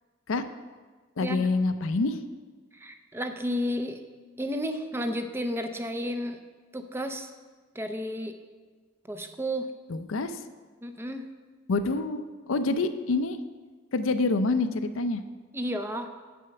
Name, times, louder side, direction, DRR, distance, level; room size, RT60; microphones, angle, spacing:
voice 1, 1.2-2.2 9.9-10.4 11.7-13.4 13.9-15.2, left 3 dB, 80° left, 10 dB, 0.5 m, -27 dB
voice 2, 2.7-4.0 4.4-6.4 6.7-7.3 7.8-8.3 9.1-9.7 10.8-11.3 15.5-16.1, equal, 10° right, 7 dB, 0.5 m, -32 dB
7.9 x 6.2 x 5.8 m, 1.4 s
head